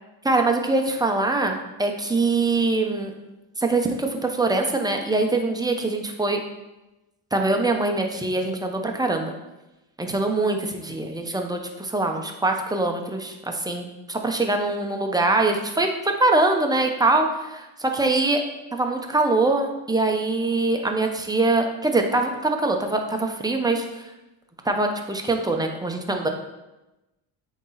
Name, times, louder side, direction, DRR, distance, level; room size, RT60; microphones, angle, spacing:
voice 1, 0.2-3.1 3.6-6.4 7.3-9.3 10.0-18.4 18.7-24.0 24.6-26.3, right 2 dB, 10° right, 3 dB, 0.8 m, -23 dB
8.2 x 3.1 x 3.9 m, 1.0 s
cardioid pair, 80°, 44 cm